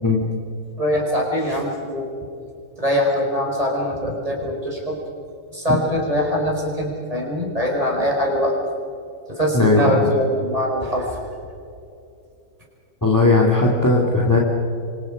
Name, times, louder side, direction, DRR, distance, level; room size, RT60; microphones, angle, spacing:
voice 1, 0.8-2.1 2.8-5.0 5.5-8.6 9.3-11.2, equal, 20° right, -1 dB, 5.3 m, -22 dB
voice 2, 9.5-10.0 13.0-14.4, left 2 dB, 10° left, -1 dB, 2.5 m, -17 dB
29.0 x 25.0 x 5.2 m, 2.7 s
omnidirectional pair, 1.9 m